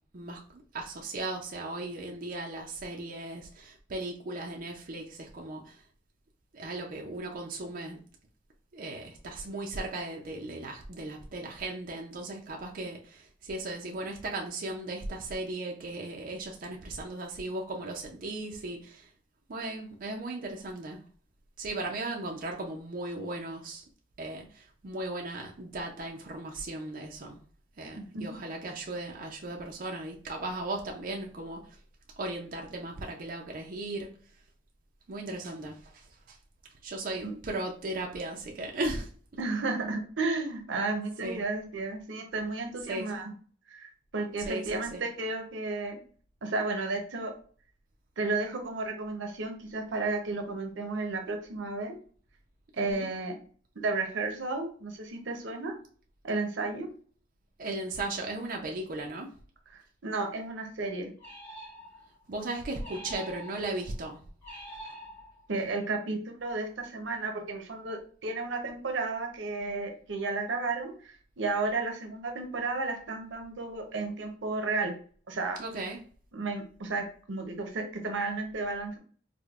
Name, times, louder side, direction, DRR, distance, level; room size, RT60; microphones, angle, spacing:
voice 1, 0.1-5.8 6.5-8.0 8.7-19.1 19.5-21.0 21.6-23.8 24.2-27.4 27.8-31.8 32.2-34.1 35.1-36.4 36.8-39.1 41.2-41.4 42.9-43.1 44.4-45.0 52.8-53.1 57.6-59.3 62.3-64.2 75.6-76.0, right 2 dB, 50° right, 0 dB, 0.5 m, -37 dB
voice 2, 27.9-28.2 37.2-37.3 39.4-43.3 43.7-46.0 46.4-47.3 48.2-51.9 52.8-53.3 53.8-55.7 56.2-56.9 59.7-61.1 65.5-74.9 75.3-75.6 76.3-79.0, right 3 dB, 85° right, 4 dB, 0.7 m, -33 dB
sound 1, 61.2-62.2 62.8-63.8 64.4-65.6, equal, 10° left, 1.1 m, -46 dB
4.9 x 2.1 x 2.3 m, 0.44 s
head